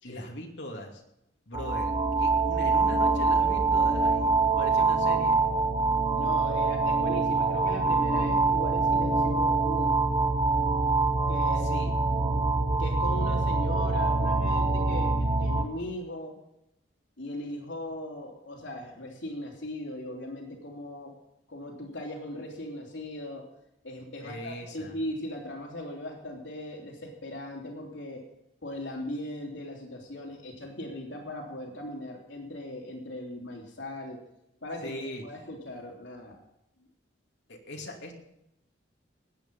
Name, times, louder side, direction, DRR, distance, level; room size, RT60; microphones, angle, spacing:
voice 1, 0.0-1.0 1.5-5.4 11.6-11.9 24.2-24.9 34.8-35.2 37.5-38.1, left 1 dB, 70° left, 1 dB, 2.7 m, -40 dB
sound 1, 1.5-15.6, right 3 dB, 25° right, 1.3 m, -25 dB
voice 2, 6.2-10.0 11.3-11.7 12.8-16.3 17.2-21.1 21.5-23.4 23.8-28.2 28.6-34.2 34.6-35.0 35.2-36.4, left 1 dB, 90° left, 1 dB, 3.4 m, -39 dB
20.5 x 9.0 x 5.5 m, 0.82 s
head